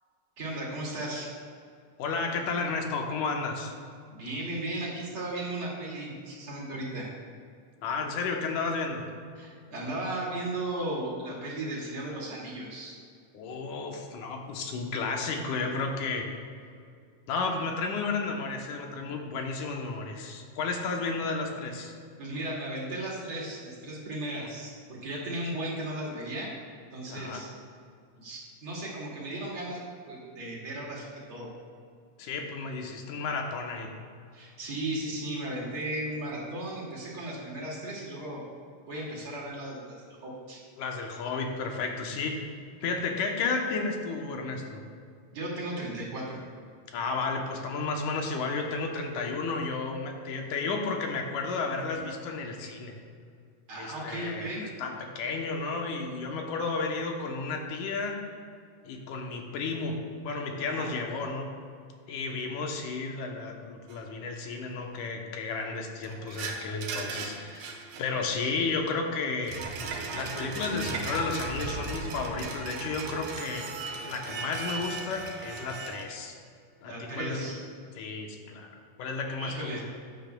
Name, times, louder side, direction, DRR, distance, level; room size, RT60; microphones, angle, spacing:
voice 1, 0.4-1.3 4.1-7.1 9.4-12.9 22.2-26.5 26.9-27.5 28.2-29.8 30.0-31.5 34.3-38.4 38.9-40.6 45.3-46.4 53.7-54.7 60.7-60.9 76.8-77.6 78.1-78.2 79.3-79.8, right 1 dB, 45° right, -5 dB, 2.8 m, -36 dB
voice 2, 2.0-3.7 7.8-9.1 13.3-16.3 17.3-22.0 27.1-27.4 32.2-33.9 40.8-42.4 42.8-44.8 46.9-52.9 53.7-54.5 54.8-58.2 58.8-61.5 62.1-67.7 68.0-69.6 70.1-73.7 74.0-76.4 76.8-77.5 78.0-78.7 79.0-79.8, left 4 dB, 70° left, 2 dB, 2.3 m, -32 dB
sound 1, 63.9-64.0 66.0-68.5 69.3-76.0, right 4 dB, 85° right, 2.7 m, -37 dB
14.0 x 10.0 x 2.3 m, 2.3 s
omnidirectional pair, 3.8 m